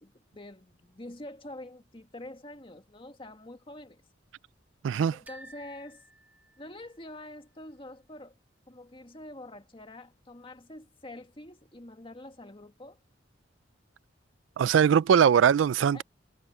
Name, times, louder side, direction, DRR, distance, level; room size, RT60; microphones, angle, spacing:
voice 1, 0.0-4.0 5.1-6.0 6.6-8.3 8.7-13.0 15.9-16.0, left 1 dB, 30° left, 1.8 m, -46 dB
voice 2, 4.8-5.2 14.6-16.0, right 8 dB, 80° right, 0.3 m, -21 dB
sound 1, 5.3-7.2, right 1 dB, 10° right, 2.6 m, -53 dB
head